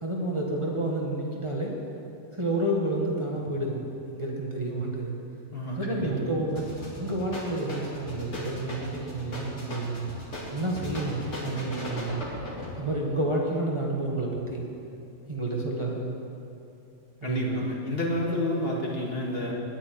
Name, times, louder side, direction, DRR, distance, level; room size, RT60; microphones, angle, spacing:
voice 1, 0.0-1.8 2.3-5.2 5.8-10.1 10.5-12.2 12.8-14.6 15.3-16.1 17.2-17.6, right 1 dB, 25° right, -2 dB, 1.5 m, -30 dB
voice 2, 5.5-6.1 17.2-19.5, left 1 dB, 50° left, -2 dB, 2.1 m, -29 dB
sound 1, 6.5-12.8, left 1 dB, 70° left, 2.7 m, -37 dB
9.9 x 9.1 x 9.5 m, 2.7 s
omnidirectional pair, 1.3 m